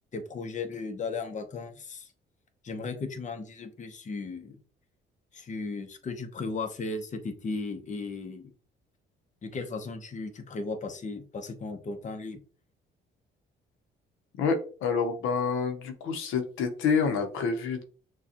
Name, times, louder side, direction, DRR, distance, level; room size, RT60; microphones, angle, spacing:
voice 1, 0.1-2.1 2.6-4.6 5.3-8.5 9.4-12.4, left 3 dB, 40° left, 6 dB, 0.8 m, -36 dB
voice 2, 14.4-17.8, left 5 dB, 90° left, 5 dB, 0.8 m, -28 dB
6.3 x 2.3 x 2.9 m, 0.40 s
cardioid pair, 90°, 20 cm